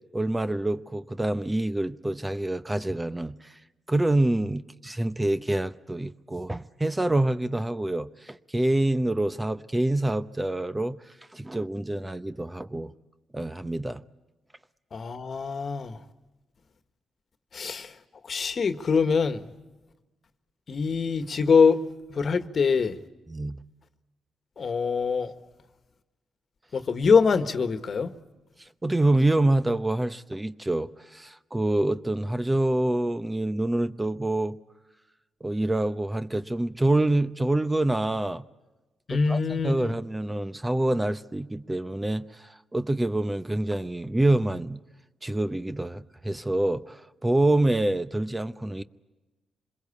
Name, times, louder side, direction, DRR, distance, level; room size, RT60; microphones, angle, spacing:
voice 1, 0.1-3.5 3.9-11.0 11.3-12.9 13.3-14.0 23.3-23.6 28.6-34.6 35.4-38.4 39.1-44.8 45.2-48.8, right 1 dB, 15° right, 0.8 m, -26 dB
voice 2, 14.9-16.0 17.5-17.9 18.3-19.4 20.7-21.8 22.1-22.9 24.6-25.3 26.7-28.1 39.1-39.9, left 5 dB, 55° left, 1.5 m, -24 dB
26.0 x 21.5 x 8.4 m
cardioid pair, 75°, 0 cm